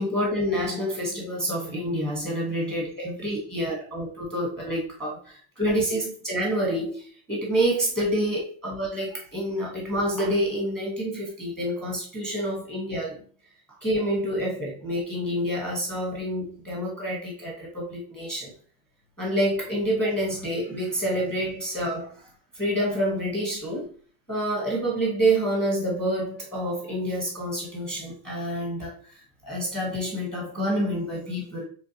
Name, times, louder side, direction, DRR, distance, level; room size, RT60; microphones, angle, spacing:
voice 1, 0.0-13.2 13.8-18.5 19.2-22.2 22.5-23.9 24.3-28.9 29.4-31.6, equal, ahead, -3 dB, 1.2 m, -28 dB
4.4 x 3.2 x 2.8 m, 0.43 s
supercardioid pair, 165°, 42 cm